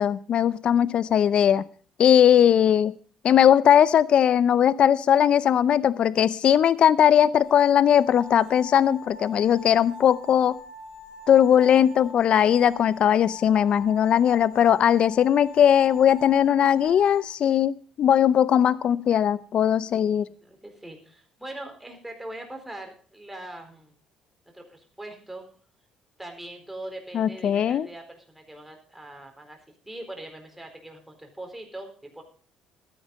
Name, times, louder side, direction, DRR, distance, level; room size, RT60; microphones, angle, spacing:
voice 1, 0.0-1.6 2.0-2.9 3.2-10.6 11.3-20.3 27.1-27.9, left 9 dB, 55° left, 18 dB, 0.6 m, -19 dB
sound 1, 7.4-17.2, left 2 dB, 80° left, 2.9 m, -43 dB
voice 2, 19.9-24.0 24.5-25.4 26.2-32.2, right 1 dB, 5° right, 3 dB, 4.3 m, -41 dB
13.0 x 9.9 x 5.4 m, 0.40 s
supercardioid pair, 75°, 2 cm